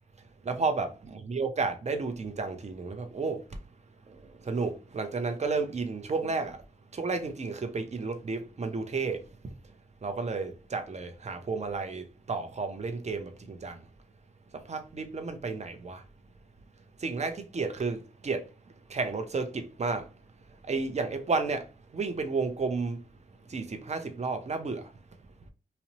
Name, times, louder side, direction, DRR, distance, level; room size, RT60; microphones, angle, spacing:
voice 1, 0.4-0.9 1.3-3.4 4.1-6.6 6.9-9.5 10.0-13.8 14.5-16.0 17.0-18.5 18.9-20.1 20.6-21.7 21.9-23.0 23.5-24.9, right 4 dB, 40° right, 0.6 m, -32 dB
2.6 x 2.1 x 2.8 m
cardioid pair, 40°, 18 cm